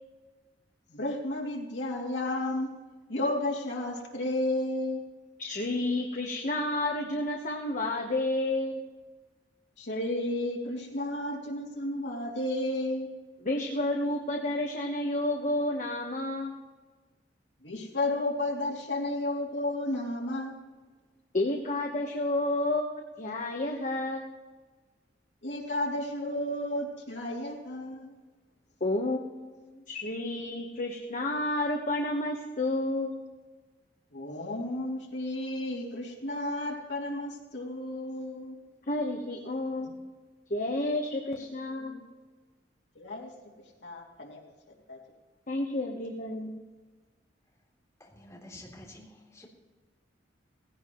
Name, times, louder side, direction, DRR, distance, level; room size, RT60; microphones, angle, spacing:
voice 1, 0.9-2.7 3.1-5.0 9.8-13.1 17.6-20.6 25.4-28.2 34.1-38.6 39.8-39.9 41.8-42.0 42.9-44.5 44.9-45.0, left 1 dB, 75° left, -1 dB, 2.7 m, -32 dB
voice 2, 5.4-8.8 13.4-16.6 21.3-24.3 28.8-33.1 38.9-40.1 40.5-42.0 45.5-46.6, left 1 dB, 45° left, 1 dB, 1.2 m, -30 dB
voice 3, 48.0-49.5, left 1 dB, 15° left, -3 dB, 3.4 m, -49 dB
18.5 x 16.5 x 3.1 m, 1.3 s
head